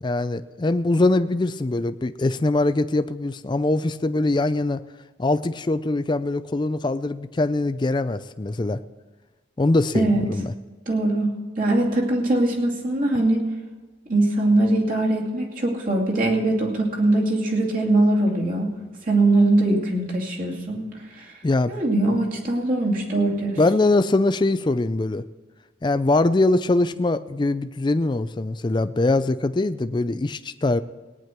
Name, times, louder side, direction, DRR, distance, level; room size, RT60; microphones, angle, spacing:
voice 1, 0.0-4.8 5.2-8.8 9.6-10.5 21.4-21.7 23.6-25.2 25.8-30.8, left 2 dB, 20° left, 12 dB, 0.4 m, -22 dB
voice 2, 10.9-13.4 14.1-18.7 19.1-20.9 21.1-21.3 21.7-23.6, right 2 dB, 45° right, -2 dB, 2.4 m, -21 dB
18.0 x 9.8 x 4.5 m, 1.3 s
head